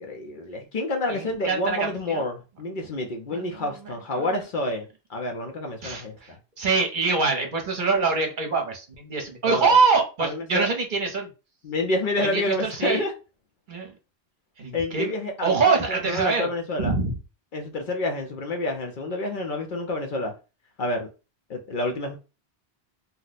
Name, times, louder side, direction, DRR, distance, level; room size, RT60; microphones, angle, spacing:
voice 1, 0.0-6.4 9.4-9.8 10.2-10.7 11.6-13.1 14.7-15.6 15.9-16.9 17.5-20.3 20.8-21.1 21.5-22.2, left 2 dB, 55° left, 0.7 m, -28 dB
voice 2, 1.1-2.2 3.3-3.7 5.8-11.3 12.2-13.0 13.7-13.9 14.6-15.1 15.4-16.5 16.8-17.1, right 4 dB, 50° right, 0.8 m, -24 dB
2.7 x 2.1 x 4.0 m
omnidirectional pair, 1.1 m